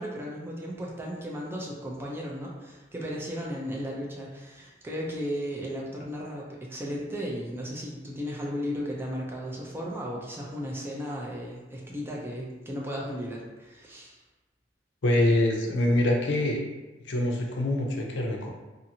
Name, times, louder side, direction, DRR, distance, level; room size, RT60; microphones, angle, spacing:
voice 1, 0.0-14.2, equal, 15° right, -3 dB, 0.4 m, -35 dB
voice 2, 15.0-16.7 17.1-18.5, left 1 dB, 75° left, 1 dB, 0.5 m, -25 dB
2.6 x 2.4 x 2.7 m, 1.2 s
head